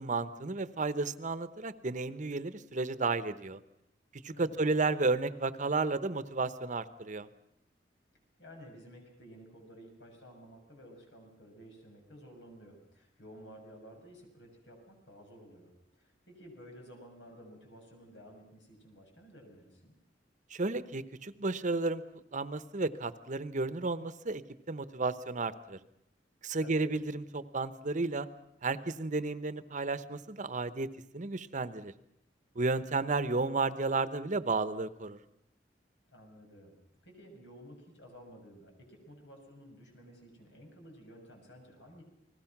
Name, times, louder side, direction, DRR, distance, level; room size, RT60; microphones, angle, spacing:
voice 1, 0.0-3.6 4.2-7.3 20.5-22.0 22.3-24.4 24.7-25.8 26.4-28.3 28.6-30.9 31.1-31.9 32.5-35.2, right 3 dB, 45° right, 14 dB, 0.9 m, -32 dB
voice 2, 4.3-4.8 8.4-19.9 26.6-26.9 36.1-36.8 37.0-42.0, equal, 85° left, 2 dB, 6.7 m, -53 dB
29.5 x 20.0 x 6.0 m, 0.76 s
head